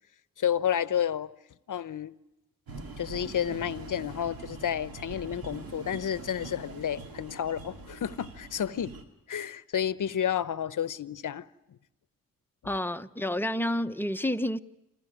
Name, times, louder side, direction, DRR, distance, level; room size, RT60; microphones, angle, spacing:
voice 1, 0.4-1.3 1.7-2.1 3.0-8.9 9.3-11.5, left 9 dB, 60° left, 0.8 m, -31 dB
sound 1, 2.7-9.0, right 3 dB, 90° right, 2.1 m, -43 dB
voice 2, 12.6-14.6, left 1 dB, 5° left, 0.8 m, -29 dB
28.0 x 13.0 x 9.3 m
supercardioid pair, 45°, 35 cm